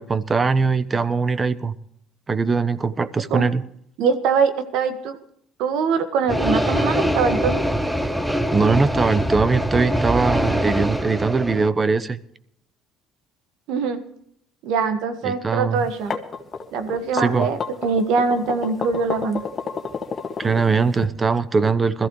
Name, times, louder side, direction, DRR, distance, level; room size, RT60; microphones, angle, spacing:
voice 1, 0.0-1.8 2.3-3.6 8.5-12.2 15.2-15.8 17.1-17.5 20.4-22.1, right 4 dB, 25° right, 16 dB, 1.0 m, -21 dB
voice 2, 4.0-5.2 5.6-7.6 13.7-14.0 14.6-16.2 16.7-19.4, right 5 dB, 75° right, 9 dB, 1.7 m, -23 dB
sound 1, 6.3-11.7, equal, 5° right, 1.0 m, -23 dB
sound 2, 15.8-21.1, left 5 dB, 35° left, 1.9 m, -30 dB
21.0 x 14.5 x 3.3 m, 0.70 s
supercardioid pair, 90°, 0 cm